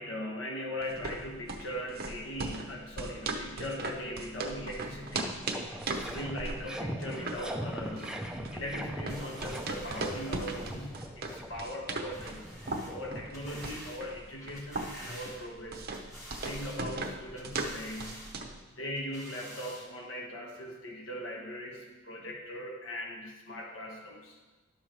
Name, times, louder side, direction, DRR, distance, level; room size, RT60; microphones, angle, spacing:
voice 1, 0.0-5.5 5.9-8.2 8.5-12.4 12.9-15.8 16.4-18.3 18.7-24.3, equal, 80° left, -1 dB, 1.3 m, -40 dB
sound 1, 0.8-18.6, right 2 dB, 50° right, 0.8 m, -39 dB
sound 2, 4.8-14.2, equal, 5° right, 0.5 m, -41 dB
sound 3, 9.1-11.1 12.1-13.0 13.3-14.0 14.4-15.6 15.9-16.8 17.4-18.4 19.0-19.9 20.5-20.6, equal, 15° left, 1.7 m, -49 dB
11.0 x 6.8 x 3.1 m, 1.2 s
head